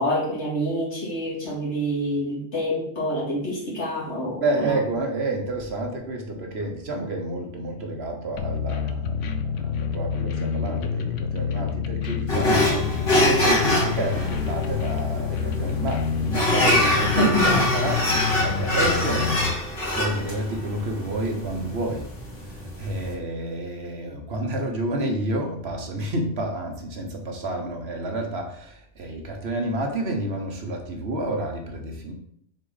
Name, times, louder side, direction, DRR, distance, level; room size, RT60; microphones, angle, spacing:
voice 1, 0.0-4.8 17.2-17.6, equal, 70° left, -5 dB, 2.6 m, -26 dB
voice 2, 4.4-19.3 19.9-22.1 22.4-32.1, right 1 dB, 60° right, 3 dB, 1.3 m, -30 dB
sound 1, 8.4-19.5, left 6 dB, 90° left, 1.0 m, -28 dB
sound 2, 12.3-23.1, left 1 dB, 45° left, 2.4 m, -24 dB
6.6 x 4.3 x 4.0 m, 0.67 s
omnidirectional pair, 1.2 m